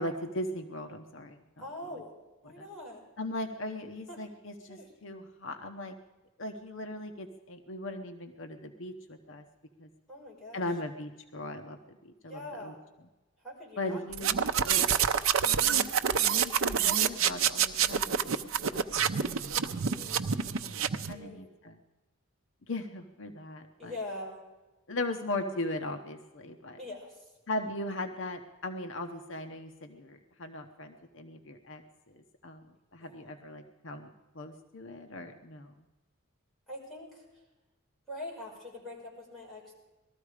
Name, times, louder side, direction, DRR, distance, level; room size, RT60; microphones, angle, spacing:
voice 1, 0.0-1.4 1.9-2.0 2.4-2.7 3.2-5.9 6.4-9.4 9.8-9.9 10.5-12.7 13.8-14.3 14.6-14.9 15.6-18.9 19.8-20.1 20.6-20.8 21.1-21.8 22.6-23.9 24.9-26.8 27.5-32.6 32.9-35.8, left 2 dB, 60° left, 6 dB, 0.9 m, -39 dB
voice 2, 1.6-2.1 2.4-3.0 4.1-4.2 4.7-4.9 10.1-10.6 12.3-12.8 13.4-14.0 14.3-14.9 19.9-20.3 21.1-21.5 23.8-24.4 26.8-27.3 33.0-33.2 36.7-37.2 38.1-39.7, left 1 dB, ahead, -6 dB, 5.0 m, -43 dB
sound 1, 14.1-21.1, right 8 dB, 70° right, 0.6 m, -27 dB
19.5 x 13.5 x 4.9 m, 1.1 s
head